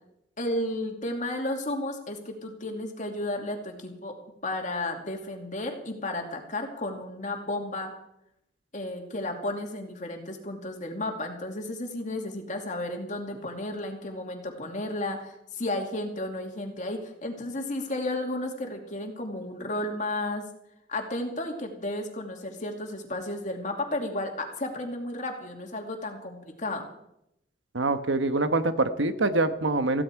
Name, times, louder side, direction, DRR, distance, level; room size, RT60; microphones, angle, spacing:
voice 1, 0.4-4.2 4.4-7.9 8.7-20.4 20.9-26.9, left 1 dB, 40° left, 3 dB, 2.6 m, -33 dB
voice 2, 27.7-30.0, right 2 dB, 80° right, 9 dB, 1.2 m, -25 dB
17.0 x 15.5 x 4.7 m, 0.80 s
head